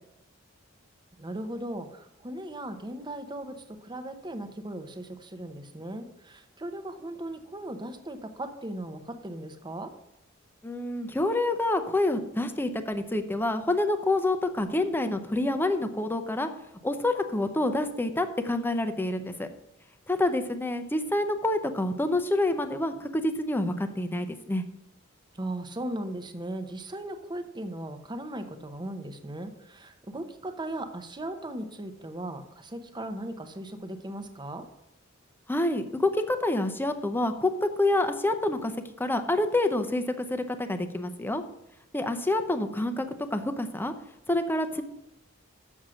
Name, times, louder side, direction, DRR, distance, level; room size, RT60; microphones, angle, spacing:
voice 1, 1.2-9.9 25.3-34.6, right 1 dB, 20° right, 7 dB, 0.8 m, -37 dB
voice 2, 10.6-16.5 16.8-19.5 20.1-24.6 35.5-38.7 39.0-41.4 41.9-43.1 43.3-43.9 44.3-44.8, left 2 dB, 10° left, 8 dB, 0.7 m, -27 dB
7.2 x 6.3 x 6.3 m, 0.86 s
head